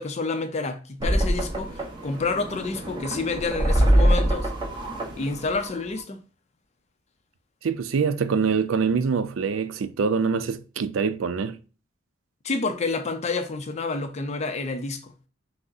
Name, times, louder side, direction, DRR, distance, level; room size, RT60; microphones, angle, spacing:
voice 1, 0.0-4.5 5.2-6.2 12.4-15.1, left 3 dB, 35° left, 0.5 m, -29 dB
sound 1, 1.0-6.0, right 1 dB, 25° right, 0.9 m, -24 dB
voice 2, 7.6-11.6, right 5 dB, 85° right, 0.4 m, -24 dB
5.8 x 2.0 x 2.6 m
head